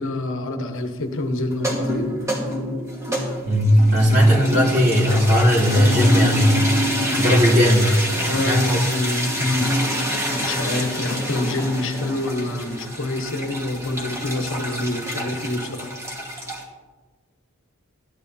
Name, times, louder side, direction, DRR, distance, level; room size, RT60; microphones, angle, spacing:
voice 1, 0.0-2.1 8.3-9.7 10.3-15.9, left 2 dB, 65° left, 5 dB, 1.0 m, -26 dB
sound 1, 1.5-16.6, equal, 15° right, 1.5 m, -26 dB
voice 2, 3.4-6.6 7.2-8.8 9.3-9.4, equal, 50° right, -5 dB, 2.8 m, -17 dB
13.5 x 9.9 x 2.7 m, 1.4 s
head